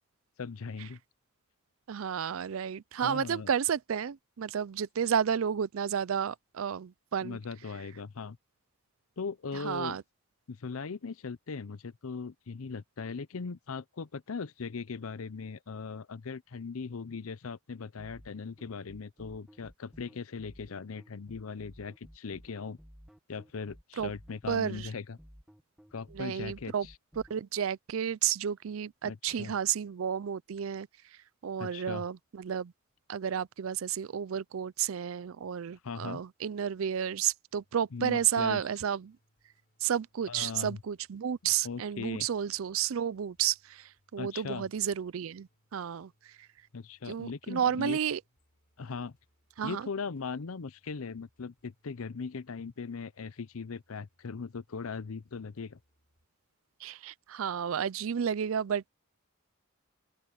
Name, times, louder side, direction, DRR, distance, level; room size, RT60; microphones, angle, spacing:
voice 1, 0.4-1.0 3.0-3.5 7.2-8.4 9.2-10.0 10.5-22.8 23.3-25.2 25.9-26.9 29.0-29.5 31.6-32.0 35.8-36.2 37.9-38.6 40.3-40.8 41.6-42.3 44.2-44.6 46.7-48.0 48.8-49.2 49.6-55.8, left 5 dB, 80° left, 0.6 m, -39 dB
voice 2, 1.9-7.4 9.5-10.0 24.0-24.1 24.5-24.9 26.1-26.9 27.3-30.9 31.4-32.7 33.1-39.2 39.8-46.3 47.1-48.2 49.6-49.8 56.8-58.9, right 8 dB, 70° right, 0.4 m, -32 dB
sound 1, 18.0-27.4, equal, 5° right, 1.3 m, -54 dB
sound 2, 37.5-56.3, equal, 45° left, 7.9 m, -74 dB
open air
head